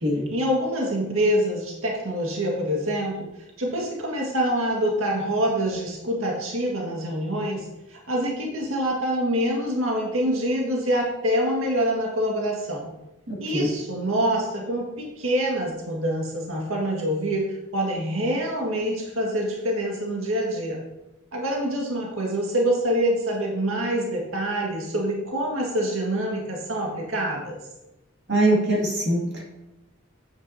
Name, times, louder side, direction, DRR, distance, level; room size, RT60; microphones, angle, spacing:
voice 1, 0.3-3.3 3.6-12.9 13.4-20.8 21.3-27.6, equal, 75° right, -2 dB, 1.8 m, -26 dB
voice 2, 13.3-13.7 28.3-29.4, right 1 dB, 55° right, -3 dB, 2.2 m, -23 dB
9.0 x 9.0 x 2.8 m, 0.99 s
head